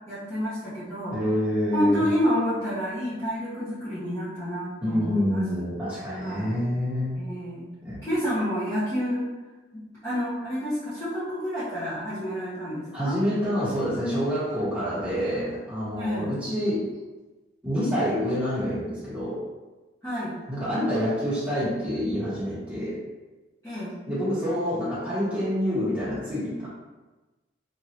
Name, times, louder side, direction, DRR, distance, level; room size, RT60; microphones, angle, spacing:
voice 1, 0.1-1.1 1.7-5.4 6.2-6.5 7.2-7.7 8.0-9.3 9.7-13.1 15.9-16.3 20.0-20.3 23.6-24.0, equal, 15° left, -13 dB, 0.8 m, -29 dB
voice 2, 1.1-2.0 4.8-7.2 7.8-8.0 12.9-16.8 17.6-19.4 20.5-23.0 24.1-26.7, equal, 10° right, -11 dB, 1.3 m, -27 dB
3.0 x 2.5 x 2.9 m, 1.2 s
head